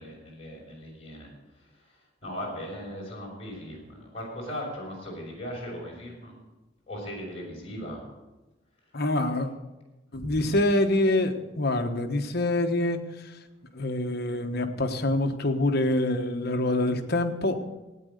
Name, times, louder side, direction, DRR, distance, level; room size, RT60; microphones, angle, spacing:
voice 1, 0.0-6.3 6.9-8.0 10.1-10.5, equal, 30° left, -3 dB, 5.4 m, -39 dB
voice 2, 8.9-9.5 10.1-13.0 13.7-17.6, left 1 dB, 55° left, 6 dB, 1.2 m, -25 dB
16.5 x 9.3 x 6.6 m, 1.1 s
head